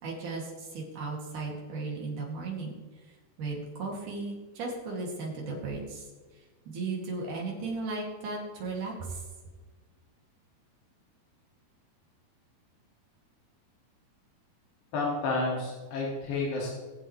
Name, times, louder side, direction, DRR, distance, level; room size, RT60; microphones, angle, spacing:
voice 1, 0.0-2.8 3.4-6.0 6.7-9.2, right 3 dB, 55° right, -2 dB, 3.7 m, -35 dB
voice 2, 14.9-16.7, left 3 dB, 90° left, -5 dB, 4.4 m, -30 dB
21.5 x 7.7 x 3.3 m, 1.3 s
omnidirectional pair, 4.8 m